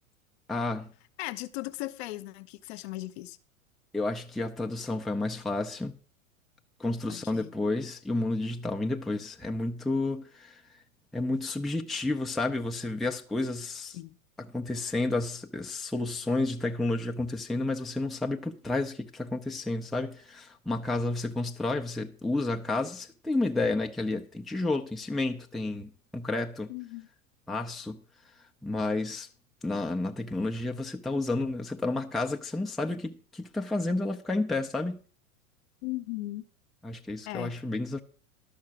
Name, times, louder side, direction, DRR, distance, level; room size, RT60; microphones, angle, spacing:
voice 1, 0.5-0.9 3.9-6.0 6.8-10.6 11.1-14.0 14.5-26.7 27.5-28.0 28.6-29.3 29.6-35.0 36.8-38.0, left 2 dB, ahead, 0.5 m, -31 dB
voice 2, 1.2-3.4 7.1-7.5 13.9-14.2 26.7-27.1 35.8-36.4 37.2-37.5, left 18 dB, 50° left, 0.9 m, -37 dB
12.0 x 6.5 x 6.0 m
figure-of-eight pair, 95°, 41 cm